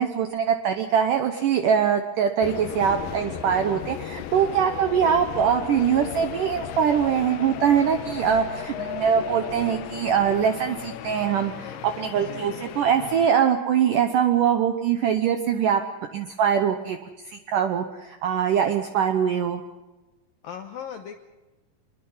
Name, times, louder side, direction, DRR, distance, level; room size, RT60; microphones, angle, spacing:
voice 1, 0.0-15.8 16.1-17.0 17.3-19.6, right 8 dB, 75° right, 7 dB, 1.9 m, -23 dB
sound 1, 2.4-13.3, left 11 dB, 85° left, 1.9 m, -36 dB
voice 2, 12.2-12.6 20.4-21.2, left 8 dB, 70° left, 6 dB, 2.3 m, -38 dB
25.0 x 21.5 x 5.6 m, 1.1 s
omnidirectional pair, 5.0 m